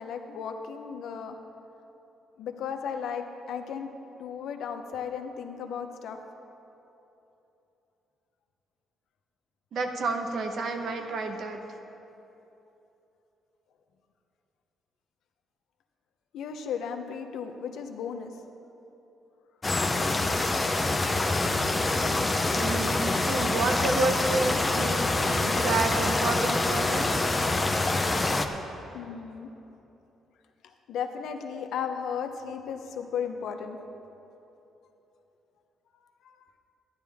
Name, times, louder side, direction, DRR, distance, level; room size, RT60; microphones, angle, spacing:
voice 1, 0.0-1.4 2.4-3.9 4.2-6.2 16.3-18.3 28.9-29.5 30.6-33.8 36.2-36.5, left 7 dB, 75° left, 5 dB, 0.9 m, -35 dB
voice 2, 9.7-11.6 22.5-27.1, right 3 dB, 65° right, 5 dB, 1.1 m, -30 dB
sound 1, 19.6-28.5, left 2 dB, 20° left, 0.8 m, -26 dB
14.0 x 10.5 x 3.6 m, 3.0 s
cardioid pair, 90°, 0 cm